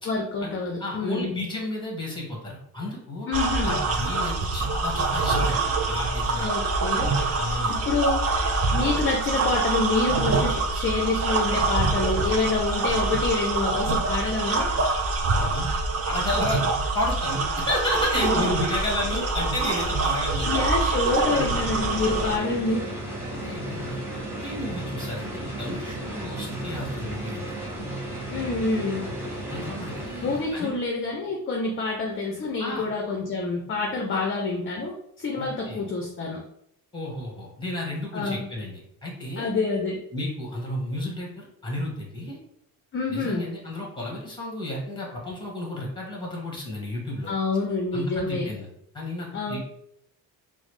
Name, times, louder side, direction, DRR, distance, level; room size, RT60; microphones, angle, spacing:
voice 1, 0.1-1.3 3.3-3.8 6.4-7.1 7.7-8.2 8.7-14.7 18.2-18.8 19.1-19.3 20.4-22.9 28.3-29.1 30.2-36.4 38.1-38.5 39.4-40.0 42.9-43.5 47.3-48.5 49.3-49.6, left 3 dB, 30° left, 0 dB, 0.5 m, -27 dB
voice 2, 0.8-3.3 3.6-6.6 7.4-7.8 15.4-16.6 16.9-20.6 21.0-21.5 22.6-22.7 23.3-27.6 29.5-30.8 32.6-32.9 34.1-34.2 35.4-35.8 36.9-39.5 40.1-42.4 43.1-47.3 47.9-48.7 48.9-49.6, left 1 dB, 10° left, -2 dB, 1.4 m, -32 dB
sound 1, 3.3-22.4, right 3 dB, 40° right, 0.6 m, -25 dB
sound 2, 20.8-30.8, right 1 dB, 5° right, 0.9 m, -34 dB
3.9 x 2.0 x 3.1 m, 0.74 s
cardioid pair, 95°, 39 cm